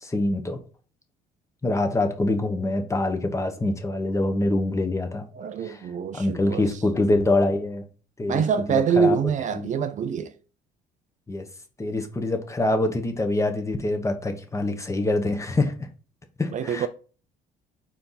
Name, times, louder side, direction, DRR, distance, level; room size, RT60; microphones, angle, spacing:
voice 1, 0.0-0.6 1.6-5.2 5.6-5.8 6.1-7.8 8.2-8.4 8.7-9.2 9.5-9.7 11.3-11.5 11.8-15.7 16.4-16.9, left 2 dB, 15° left, 1.1 m, -25 dB
voice 2, 5.3-6.7 8.3-10.3 16.5-16.9, right 6 dB, 45° right, 0.5 m, -25 dB
4.4 x 4.0 x 5.6 m
cardioid pair, 110°, 17 cm